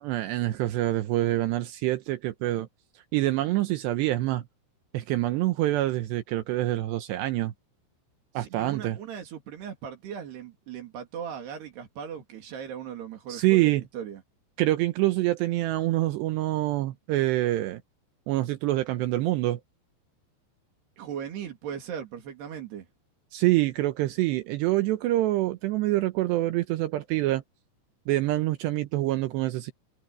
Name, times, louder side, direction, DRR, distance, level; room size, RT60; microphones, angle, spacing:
voice 1, 0.0-2.7 3.1-4.4 4.9-7.5 8.3-9.0 13.3-13.8 14.6-17.8 18.3-19.6 23.3-27.4 28.1-29.7, right 16 dB, 80° right, 2.8 m, -26 dB
voice 2, 8.4-14.2 21.0-22.9, right 8 dB, 65° right, 4.5 m, -38 dB
omnidirectional pair, 5.4 m